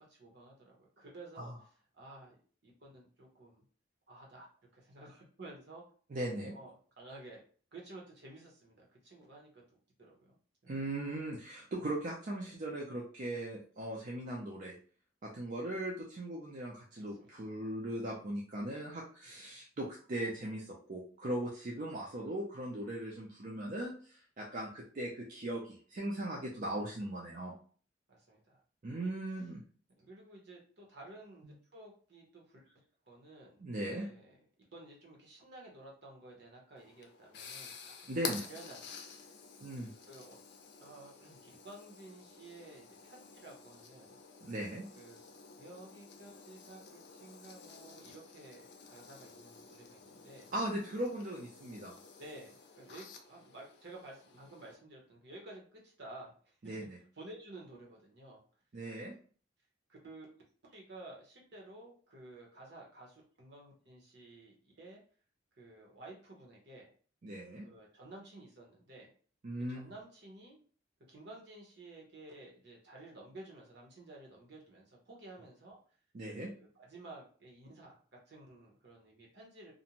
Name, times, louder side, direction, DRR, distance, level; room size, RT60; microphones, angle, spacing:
voice 1, 0.1-1.5 2.0-3.6 4.1-4.5 4.7-5.8 6.5-7.4 7.7-10.4 10.6-10.7 12.4-12.5 16.9-17.5 21.9-22.0 28.1-28.6 29.0-29.1 30.0-32.7 33.1-34.4 34.7-37.9 38.2-38.9 39.2-39.4 39.8-40.4 40.8-44.2 44.9-45.2 45.6-50.5 52.2-56.5 57.2-58.4 59.9-60.3 60.6-65.0 65.6-66.9 67.6-69.1 69.6-70.6 71.1-75.8 76.3-79.7, right 2 dB, 65° right, -2 dB, 0.9 m, -53 dB
voice 2, 6.1-6.5 10.7-14.8 15.2-27.5 28.8-29.6 31.4-31.5 33.6-34.1 38.1-38.4 39.6-39.9 44.4-44.9 50.5-52.0 56.6-57.0 58.7-59.1 67.2-67.7 69.4-69.9 76.1-76.5, right 1 dB, 45° right, -3 dB, 0.5 m, -39 dB
sound 1, 36.8-54.8, left 5 dB, 65° left, 0.5 m, -50 dB
2.5 x 2.1 x 2.9 m, 0.43 s
head